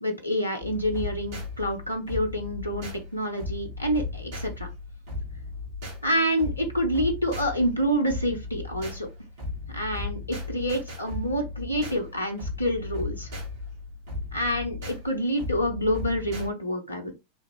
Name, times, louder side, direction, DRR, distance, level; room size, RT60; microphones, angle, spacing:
voice 1, 0.0-4.7 6.0-9.1 9.7-13.3 14.3-17.2, equal, 85° left, 3 dB, 0.6 m, -27 dB
sound 1, 0.6-16.5, left 3 dB, 50° right, 1.7 m, -36 dB
3.6 x 2.5 x 3.0 m, 0.24 s
figure-of-eight pair, 90°, 0 cm